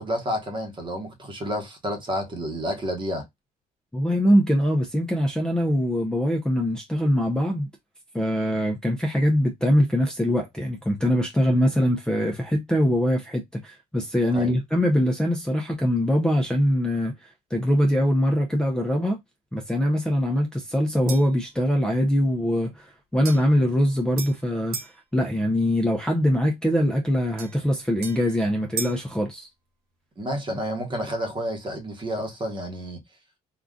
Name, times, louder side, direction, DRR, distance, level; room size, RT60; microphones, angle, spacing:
voice 1, 0.0-3.2 14.3-14.5 30.2-33.0, equal, 30° right, 1.1 m, -30 dB
voice 2, 3.9-7.7 8.1-17.1 17.5-19.2 19.5-22.9 23.1-24.8 25.1-29.5, equal, 5° left, 0.6 m, -23 dB
sound 1, 21.1-21.4 23.3-25.0 27.4-29.1, right 5 dB, 70° right, 1.0 m, -37 dB
3.7 x 2.5 x 2.3 m
cardioid pair, 110°, 17 cm